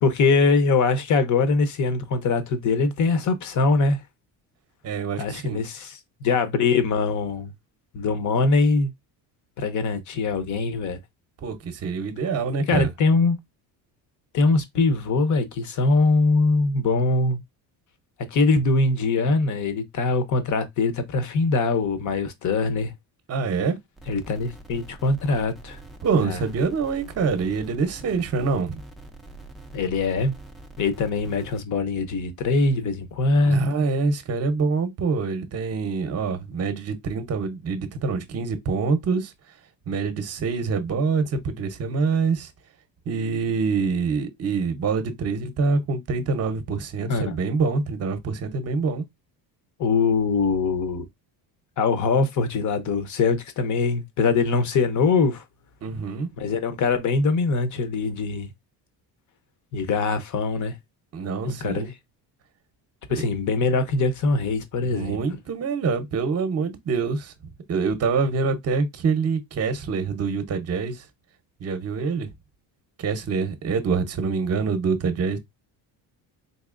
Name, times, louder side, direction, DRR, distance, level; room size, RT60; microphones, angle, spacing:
voice 1, 0.0-4.0 5.2-6.0 6.2-7.5 7.9-8.9 9.6-11.0 12.7-13.4 14.3-17.4 18.3-22.9 24.1-25.8 26.2-26.4 29.7-30.3 30.8-33.7 47.1-47.4 49.8-51.1 51.8-55.4 56.4-58.5 59.7-60.8 61.5-61.9 63.1-65.2, left 3 dB, 45° left, 0.7 m, -22 dB
voice 2, 4.8-5.6 11.4-12.9 23.3-23.8 26.0-28.8 33.4-39.3 39.9-42.5 43.1-49.0 55.8-56.3 61.1-61.9 63.2-63.3 64.9-67.3 67.7-71.0 71.6-72.3 73.0-75.4, right 4 dB, 35° right, 0.7 m, -25 dB
sound 1, 24.0-31.6, right 2 dB, ahead, 0.3 m, -44 dB
4.1 x 3.0 x 2.4 m
cardioid pair, 150°, 43 cm